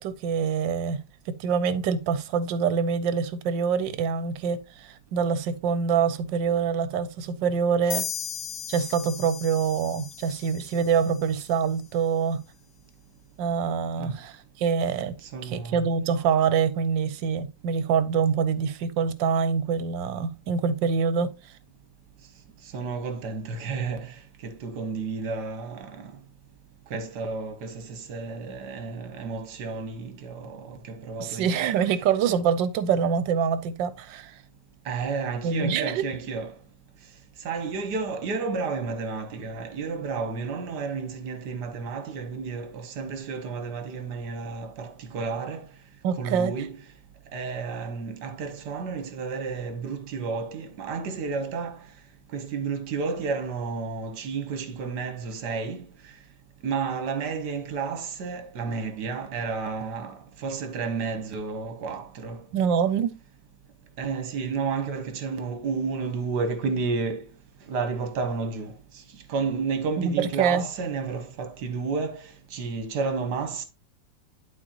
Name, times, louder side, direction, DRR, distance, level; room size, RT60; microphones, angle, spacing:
voice 1, 0.0-8.1 8.7-12.4 13.4-15.1 15.4-21.5 31.2-34.4 35.4-36.1 46.0-46.5 62.5-63.1 70.0-70.7, right 6 dB, 80° right, 1.4 m, -25 dB
sound 1, 7.9-11.5, left 9 dB, 70° left, 1.2 m, -37 dB
voice 2, 15.3-15.9 22.7-24.1 24.4-26.1 26.9-31.7 34.9-36.5 37.5-45.6 46.2-46.8 47.3-51.8 52.3-55.8 56.6-62.4 64.0-67.3 67.7-68.7 69.3-72.2 72.5-73.6, right 4 dB, 65° right, 1.6 m, -31 dB
11.5 x 4.3 x 2.9 m
omnidirectional pair, 2.0 m